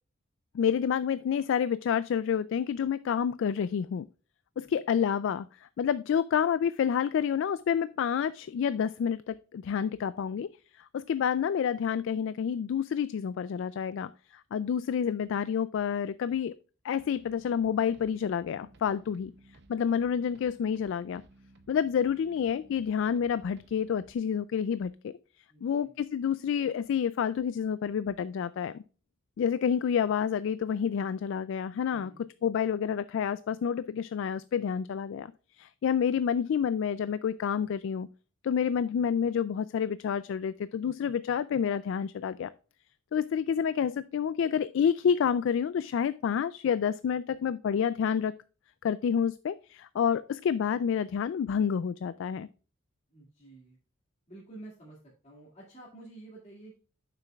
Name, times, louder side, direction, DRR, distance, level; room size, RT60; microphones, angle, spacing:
voice 1, 0.5-4.1 4.6-10.5 10.7-16.5 16.8-19.3 19.7-21.2 21.7-28.8 29.4-32.1 32.4-38.1 38.4-42.5 43.1-48.3 48.8-52.5, left 7 dB, 65° left, 15 dB, 0.3 m, -29 dB
sound 1, 17.1-24.1, right 1 dB, 60° right, 0.7 m, -58 dB
voice 2, 25.5-25.9 31.9-32.2 53.1-53.8 54.3-56.8, right 2 dB, 35° left, -6 dB, 2.2 m, -50 dB
9.0 x 6.9 x 2.3 m, 0.35 s
head